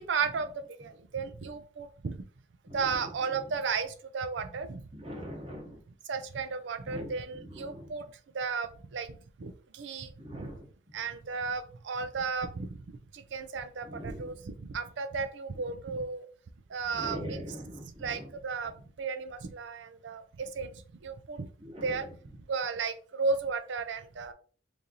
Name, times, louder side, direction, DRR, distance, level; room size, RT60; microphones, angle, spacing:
voice 1, 0.0-2.3 2.7-4.9 6.1-8.1 8.3-10.5 10.9-16.3 16.7-17.4 17.8-18.7 19.0-21.5 21.8-22.1 22.5-24.3, right 5 dB, 75° right, 10 dB, 0.5 m, -34 dB
voice 2, 2.7-3.1 4.9-5.8 6.9-7.9 10.2-10.7 13.8-14.3 16.9-18.3 21.6-22.0, equal, 30° right, 0 dB, 1.1 m, -42 dB
3.1 x 2.7 x 3.8 m, 0.42 s
head